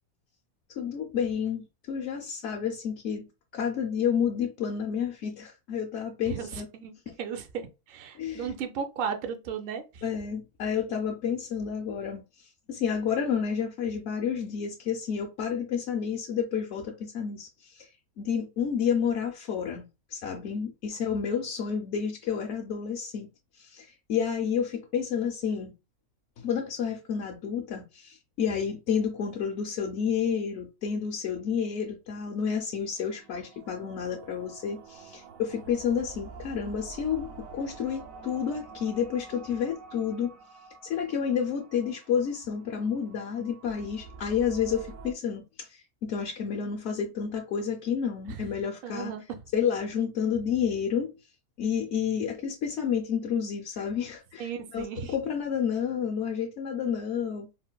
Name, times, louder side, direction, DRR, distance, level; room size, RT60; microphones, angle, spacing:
voice 1, 0.7-3.3 3.5-6.7 7.1-7.2 8.1-8.5 10.0-17.9 18.2-23.3 23.6-25.7 26.4-40.4 40.8-49.1 49.5-51.1 51.6-57.5, left 7 dB, 65° left, 0.7 m, -30 dB
voice 2, 6.2-10.0 48.3-48.5 48.8-49.4 54.4-55.1, right 7 dB, 60° right, 0.6 m, -35 dB
sound 1, 32.9-45.1, right 4 dB, 75° right, 1.0 m, -47 dB
3.8 x 2.2 x 2.2 m
omnidirectional pair, 1.5 m